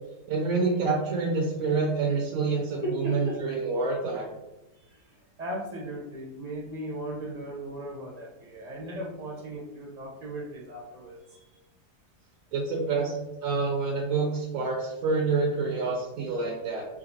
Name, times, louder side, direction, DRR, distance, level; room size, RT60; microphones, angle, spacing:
voice 1, 0.3-4.3 12.5-13.1 13.4-16.9, right 4 dB, 70° right, -1 dB, 1.0 m, -27 dB
voice 2, 2.8-3.4 4.7-11.5, right 1 dB, 40° right, -3 dB, 0.6 m, -37 dB
3.7 x 2.7 x 2.7 m, 0.97 s
omnidirectional pair, 1.7 m